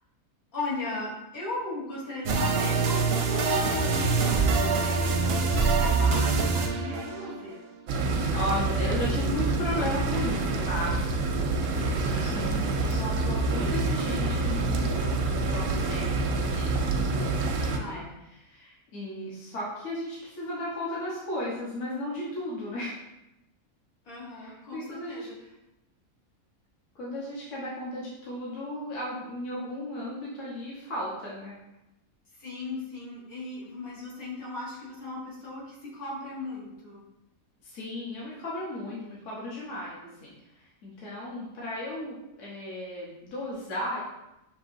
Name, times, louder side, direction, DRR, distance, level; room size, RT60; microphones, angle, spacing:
voice 1, 0.5-7.6 11.7-12.3 17.6-18.1 24.0-25.3 32.3-37.0, left 2 dB, 80° left, -6 dB, 1.9 m, -37 dB
sound 1, 2.2-7.5, right 4 dB, 60° right, 0.6 m, -24 dB
sound 2, 7.9-17.8, right 3 dB, 85° right, 1.1 m, -27 dB
voice 2, 8.3-10.9 11.9-16.8 17.8-18.0 18.4-23.0 24.4-25.3 26.9-31.6 37.6-40.3 40.8-44.0, left 1 dB, 60° left, -6 dB, 1.3 m, -35 dB
6.4 x 2.9 x 2.6 m, 0.90 s
omnidirectional pair, 1.5 m